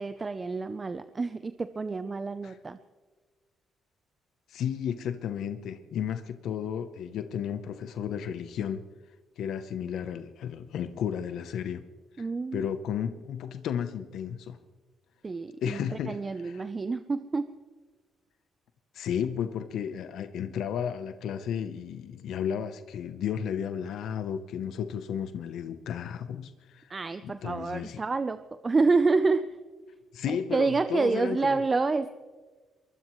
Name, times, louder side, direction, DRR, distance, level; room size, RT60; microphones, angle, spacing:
voice 1, 0.0-2.8 12.2-12.7 15.2-17.5 26.9-29.6 30.3-32.1, right 4 dB, 30° right, 11 dB, 0.6 m, -28 dB
voice 2, 4.5-8.8 9.4-11.9 12.2-12.3 12.5-14.6 15.6-16.7 18.9-26.9 27.2-28.0 30.1-31.6, left 8 dB, 75° left, 10 dB, 0.8 m, -33 dB
23.0 x 20.0 x 3.1 m, 1.4 s
cardioid pair, 90°, 0 cm